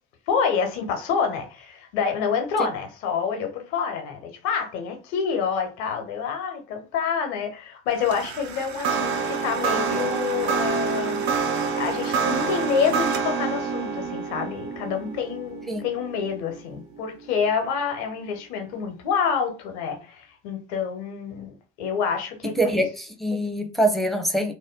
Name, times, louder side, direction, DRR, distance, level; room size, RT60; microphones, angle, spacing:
voice 1, 0.3-11.2 11.8-22.9, left 6 dB, 85° left, 0.7 m, -27 dB
sound 1, 7.9-17.3, right 5 dB, 55° right, 0.7 m, -27 dB
voice 2, 22.6-24.5, right 1 dB, ahead, 0.7 m, -24 dB
2.5 x 2.1 x 3.6 m
hypercardioid pair, 55°, 34 cm